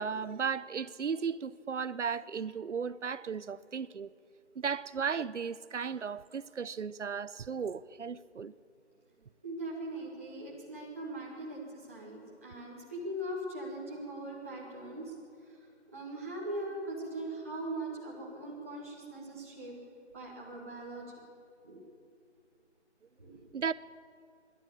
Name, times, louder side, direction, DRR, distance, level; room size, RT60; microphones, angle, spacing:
voice 1, 0.0-4.1 4.6-8.5 23.5-23.7, right 6 dB, 80° right, 0.8 m, -35 dB
voice 2, 9.4-15.1 15.5-15.6 15.9-19.7 20.1-21.1 21.6-21.8 23.2-23.4, right 1 dB, 10° right, 1.6 m, -40 dB
25.5 x 12.0 x 8.6 m
figure-of-eight pair, 180°, 35 cm